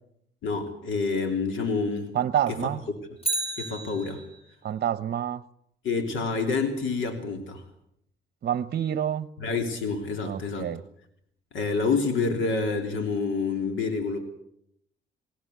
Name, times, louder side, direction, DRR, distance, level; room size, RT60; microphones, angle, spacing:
voice 1, 0.4-2.2 2.5-2.7 3.6-4.2 5.8-7.6 9.4-10.7 11.5-14.2, left 4 dB, 75° left, 3.3 m, -28 dB
voice 2, 2.1-2.8 4.6-5.4 8.4-9.3 10.2-10.8, right 10 dB, 50° right, 0.9 m, -27 dB
Bicycle, 3.2-4.6 12.9-13.0, right 2 dB, 30° left, 2.9 m, -32 dB
19.5 x 19.0 x 8.2 m
cardioid pair, 90°, 20 cm